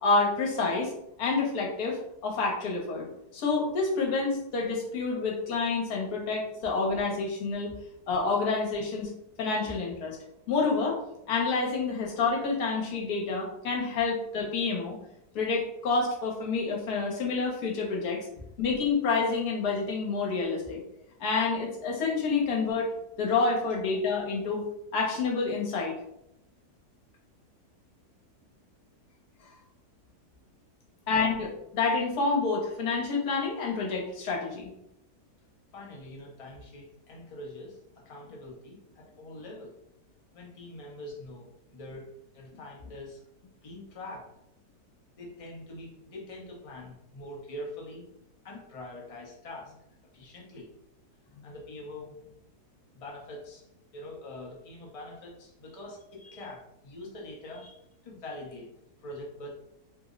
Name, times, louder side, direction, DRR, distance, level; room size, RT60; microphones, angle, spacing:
voice 1, 0.0-0.9 1.2-3.1 3.3-7.7 8.1-9.1 9.4-10.2 10.5-11.0 11.3-15.0 15.3-18.3 18.6-20.8 21.2-22.9 23.2-24.6 24.9-26.0 31.1-31.3 31.8-34.7, left 4 dB, 75° left, -1 dB, 1.3 m, -28 dB
voice 2, 35.7-39.7 40.3-43.2 43.6-44.3 45.1-48.1 48.4-49.7 50.1-50.7 51.4-52.1 52.9-53.7 53.9-57.7 58.0-58.7 59.0-59.5, left 1 dB, 35° left, -2 dB, 0.5 m, -44 dB
3.3 x 2.0 x 3.7 m, 0.82 s
omnidirectional pair, 1.7 m